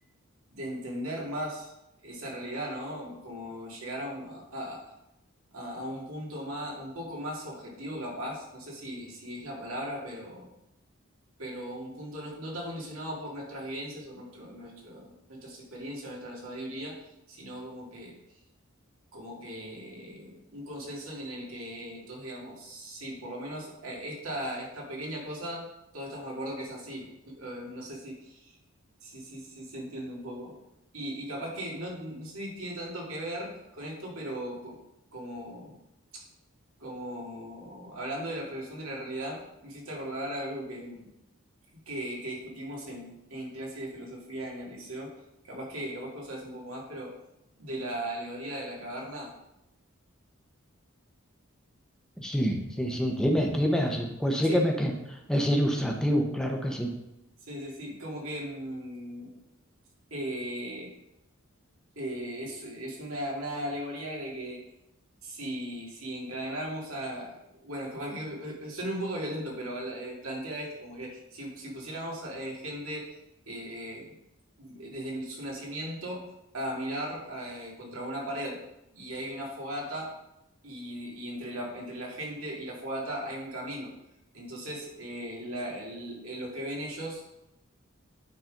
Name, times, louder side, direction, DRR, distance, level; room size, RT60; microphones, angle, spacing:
voice 1, 0.5-1.7 2.0-4.8 5.5-10.5 11.4-17.0 17.3-18.4 19.1-25.7 25.9-28.5 29.0-30.5 30.9-34.8 35.1-35.8 36.1-36.2 36.8-41.1 41.9-45.1 45.4-47.1 47.6-49.3 54.4-54.6 57.4-59.4 60.1-60.9 62.0-64.6 65.2-73.1 73.5-74.2 74.6-76.3 76.5-78.6 78.9-80.1 80.6-83.9 84.3-87.4, equal, 80° right, -2 dB, 2.3 m, -37 dB
voice 2, 52.2-56.9, equal, 5° left, 1 dB, 0.9 m, -27 dB
8.9 x 4.0 x 5.3 m, 0.88 s
head